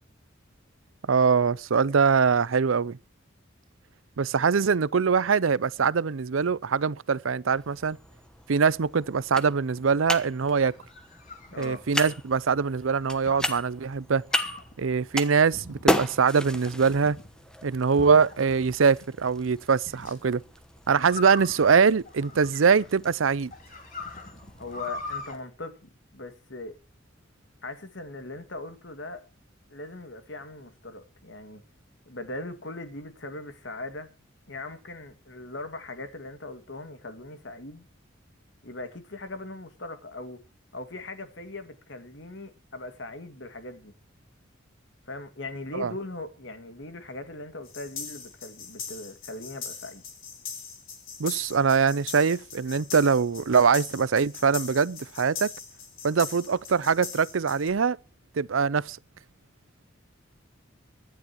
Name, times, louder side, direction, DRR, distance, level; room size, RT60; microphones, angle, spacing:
voice 1, 1.1-3.0 4.2-8.0 8.5-10.7 11.6-14.2 14.8-17.2 17.6-20.4 20.9-23.5 45.7-45.9 51.2-55.5 56.0-58.0 58.4-59.0, right 5 dB, 85° right, 0.6 m, -23 dB
sound 1, 7.5-25.4, equal, 5° left, 1.1 m, -35 dB
sound 2, 10.5-12.2 13.3-13.6 14.3-14.7 15.5-16.0 16.6-17.3 18.0-18.7 19.9-20.2 20.9-23.0 23.5-25.4, left 3 dB, 40° left, 3.3 m, -41 dB
voice 2, 11.5-11.8 24.6-26.8 27.6-29.2 29.7-31.6 32.1-34.1 34.5-37.9 38.6-40.4 40.7-43.9 45.1-50.0, left 2 dB, 65° left, 2.1 m, -40 dB
sound 3, 47.7-57.7, left 7 dB, 90° left, 4.0 m, -41 dB
24.0 x 10.5 x 3.0 m
head